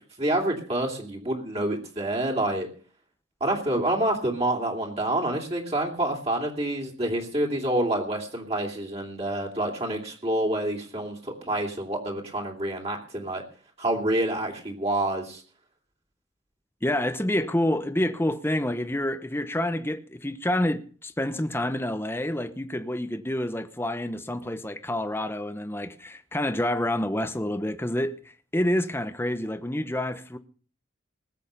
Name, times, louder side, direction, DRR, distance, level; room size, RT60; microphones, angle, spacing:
voice 1, 0.2-2.7 3.4-13.4 13.8-15.4, right 1 dB, 30° right, 3.1 m, -27 dB
voice 2, 16.8-28.2 28.5-30.4, left 1 dB, 10° left, 0.9 m, -28 dB
19.5 x 8.1 x 6.8 m
head